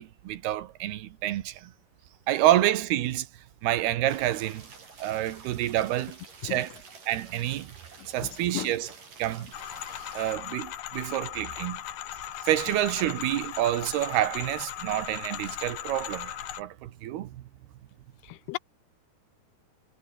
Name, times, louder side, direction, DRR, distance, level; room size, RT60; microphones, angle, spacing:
voice 1, 0.0-1.7 2.3-3.3 3.6-4.7 5.0-6.2 6.4-6.8 7.1-7.7 8.1-8.9 9.2-9.5 10.1-11.8 12.4-17.4, right 13 dB, 70° right, 3.1 m, -28 dB
sound 1, 4.1-10.4, right 5 dB, 50° right, 7.2 m, -49 dB
sound 2, 9.5-16.6, left 12 dB, 65° left, 3.3 m, -38 dB
voice 2, 18.2-18.6, left 22 dB, 85° left, 2.5 m, -34 dB
omnidirectional pair, 4.9 m